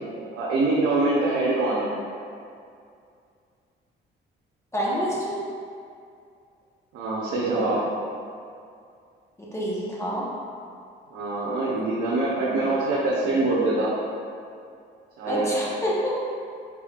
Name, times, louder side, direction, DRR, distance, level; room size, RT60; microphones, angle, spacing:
voice 1, 0.1-1.9 6.9-7.8 11.1-13.9 15.2-15.5, right 2 dB, 90° right, -7 dB, 0.8 m, -24 dB
voice 2, 4.7-5.3 9.4-10.3 15.3-16.1, equal, 15° left, -7 dB, 1.2 m, -27 dB
4.9 x 3.7 x 2.4 m, 2.4 s
cardioid pair, 90°, 20 cm